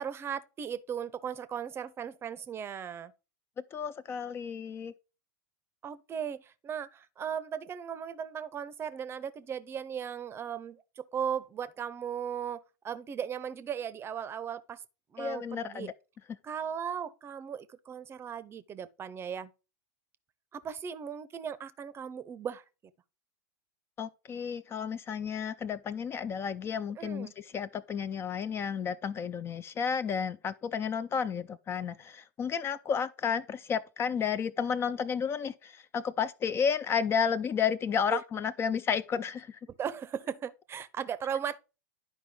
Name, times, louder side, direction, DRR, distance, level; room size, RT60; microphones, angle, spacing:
voice 1, 0.0-3.1 5.8-14.8 15.1-15.9 16.4-19.5 20.5-22.6 27.0-27.3 38.1-38.2 39.7-41.6, right 8 dB, 25° right, 0.7 m, -37 dB
voice 2, 3.7-4.9 15.2-15.9 24.0-39.6, left 7 dB, 25° left, 0.4 m, -32 dB
11.0 x 5.0 x 3.7 m
figure-of-eight pair, 95°, 10 cm